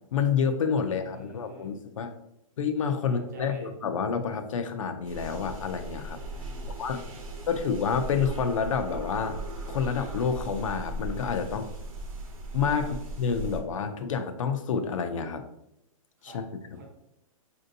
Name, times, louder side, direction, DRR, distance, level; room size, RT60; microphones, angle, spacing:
voice 1, 0.1-2.1 2.6-6.2 6.8-7.0 7.5-9.4 9.6-11.7 12.5-12.9 13.2-15.4 16.2-16.4, left 6 dB, 65° left, 8 dB, 0.4 m, -28 dB
voice 2, 0.9-1.8 3.0-3.7 6.3-7.5 12.8-12.9 16.2-16.4 16.7-16.9, right 3 dB, 30° right, 0 dB, 0.7 m, -48 dB
sound 1, 5.0-13.6, right 1 dB, 75° right, 0.9 m, -38 dB
4.2 x 2.6 x 2.6 m, 0.82 s
hypercardioid pair, 180°, 18 cm